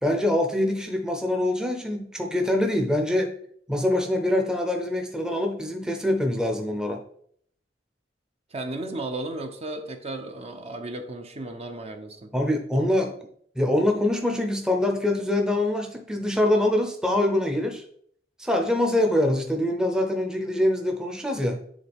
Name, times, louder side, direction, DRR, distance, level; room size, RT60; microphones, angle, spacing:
voice 1, 0.0-3.3 3.7-7.0 12.3-13.1 13.6-17.8 18.4-21.6, left 1 dB, 5° right, 3 dB, 0.7 m, -24 dB
voice 2, 8.5-12.3, right 2 dB, 35° right, 5 dB, 0.7 m, -34 dB
9.4 x 3.8 x 3.5 m, 0.63 s
head